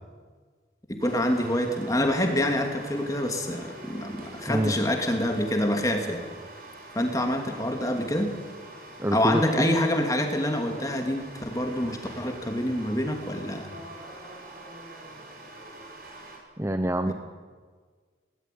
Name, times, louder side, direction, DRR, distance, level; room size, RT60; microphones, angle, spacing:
voice 1, 0.9-6.2 6.9-8.3 9.1-13.7 17.1-17.2, left 1 dB, 20° left, 4 dB, 2.8 m, -26 dB
sound 1, 1.0-16.4, right 1 dB, 50° right, 5.4 m, -44 dB
voice 2, 9.0-9.8 16.6-17.1, right 1 dB, 15° right, 8 dB, 0.8 m, -26 dB
19.5 x 18.5 x 9.5 m, 1.5 s
head